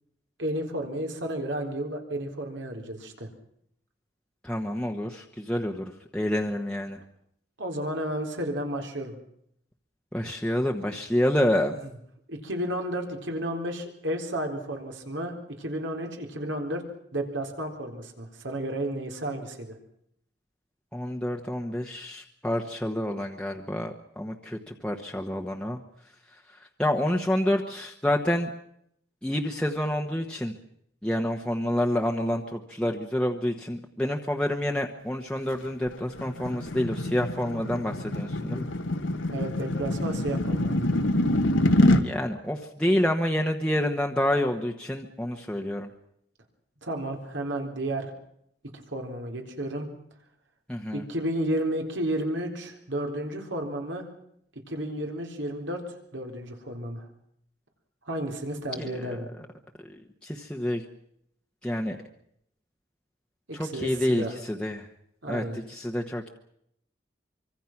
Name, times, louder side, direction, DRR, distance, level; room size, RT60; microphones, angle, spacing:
voice 1, 0.4-3.3 7.6-9.2 12.3-16.8 17.1-19.7 39.3-40.9 46.8-48.1 48.7-49.9 50.9-54.1 54.7-57.1 58.1-59.3 63.5-64.4 65.2-65.6, right 1 dB, 80° right, 3 dB, 3.9 m, -32 dB
voice 2, 4.4-7.0 10.1-11.8 20.9-25.8 26.8-28.5 29.2-30.5 31.0-38.7 42.0-45.9 50.7-51.0 58.8-59.1 60.2-60.8 61.6-62.0 63.5-64.9 65.3-65.4 65.7-66.3, left 1 dB, 5° left, 0 dB, 1.2 m, -28 dB
sound 1, 35.6-42.0, left 1 dB, 90° left, 1.8 m, -25 dB
25.0 x 24.5 x 6.0 m, 0.73 s
head